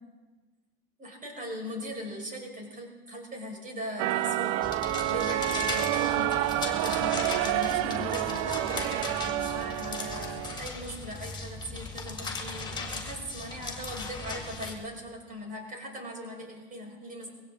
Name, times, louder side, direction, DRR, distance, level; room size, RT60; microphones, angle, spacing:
voice 1, 1.0-17.3, equal, 25° right, 1 dB, 5.4 m, -40 dB
sound 1, 4.0-10.6, right 15 dB, 55° right, 0.6 m, -29 dB
sound 2, 4.6-14.7, left 3 dB, 15° left, 3.5 m, -37 dB
23.0 x 16.0 x 3.8 m, 1.3 s
hypercardioid pair, 100°, 31 cm